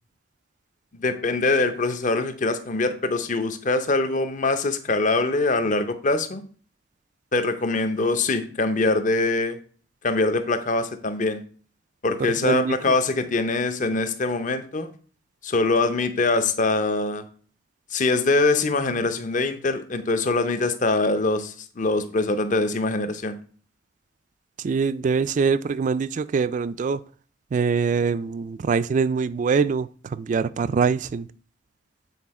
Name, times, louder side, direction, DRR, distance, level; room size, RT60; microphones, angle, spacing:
voice 1, 0.9-6.4 7.3-9.6 10.0-11.4 12.0-14.9 15.4-17.2 17.9-23.4, left 3 dB, 45° left, 0.7 m, -23 dB
voice 2, 12.2-12.8 24.6-27.0 27.5-31.3, right 5 dB, 40° right, 0.3 m, -24 dB
8.4 x 4.2 x 4.2 m
head